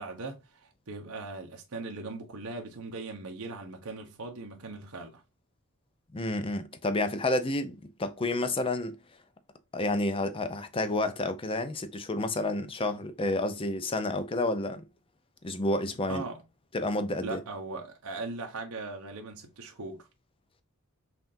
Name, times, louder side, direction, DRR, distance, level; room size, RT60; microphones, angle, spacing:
voice 1, 0.0-5.2 16.1-16.4 17.2-20.1, right 3 dB, 75° right, 0.8 m, -39 dB
voice 2, 6.1-9.0 9.7-14.8 15.4-16.2 16.7-17.4, left 2 dB, 25° left, 0.5 m, -30 dB
5.7 x 2.5 x 2.6 m
head